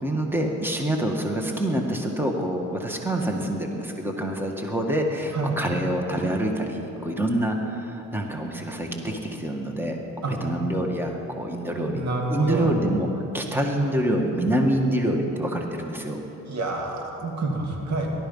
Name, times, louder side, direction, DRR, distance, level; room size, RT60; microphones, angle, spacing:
voice 1, 0.0-10.0 10.3-12.0 12.3-13.1 13.3-16.2, right 1 dB, 5° right, 2 dB, 1.7 m, -26 dB
voice 2, 11.9-12.7 16.4-18.1, right 2 dB, 65° right, 1 dB, 2.5 m, -28 dB
18.5 x 12.0 x 5.6 m, 3.0 s
cardioid pair, 90°, 30 cm